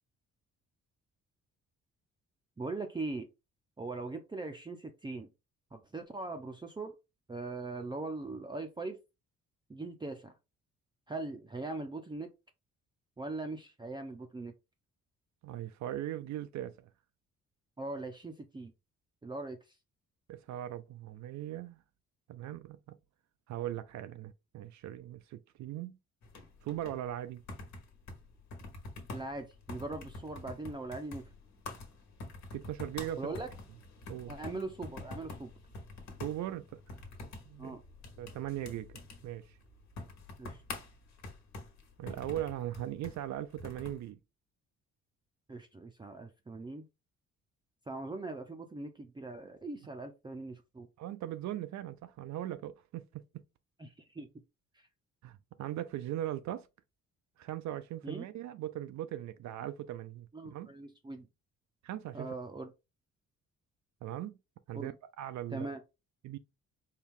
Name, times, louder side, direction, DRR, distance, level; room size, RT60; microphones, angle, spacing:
voice 1, 2.6-3.3 3.8-5.3 5.7-6.9 7.3-9.0 9.7-10.4 11.1-12.3 13.2-14.5 17.8-18.7 19.2-19.8 29.1-31.3 33.2-33.5 34.3-35.5 37.6-37.8 40.4-40.6 45.5-46.9 47.9-50.9 53.8-54.3 54.7-54.9 58.0-58.2 60.3-61.3 62.1-62.7 64.7-64.9 65.5-65.8, right 2 dB, 15° right, 0.5 m, -40 dB
voice 2, 15.4-16.9 20.3-21.8 22.3-23.0 23.5-26.0 26.6-27.4 32.5-33.3 34.1-34.3 36.2-36.8 37.5-37.8 38.2-39.6 42.0-44.2 51.0-53.2 55.2-56.7 57.4-60.7 61.8-62.3 64.0-64.4 64.7-64.9 65.2-65.7 66.2-66.4, right 13 dB, 70° right, 0.4 m, -39 dB
sound 1, 26.2-44.0, left 2 dB, 65° left, 1.3 m, -47 dB
4.5 x 2.3 x 3.5 m
cardioid pair, 90°, 30 cm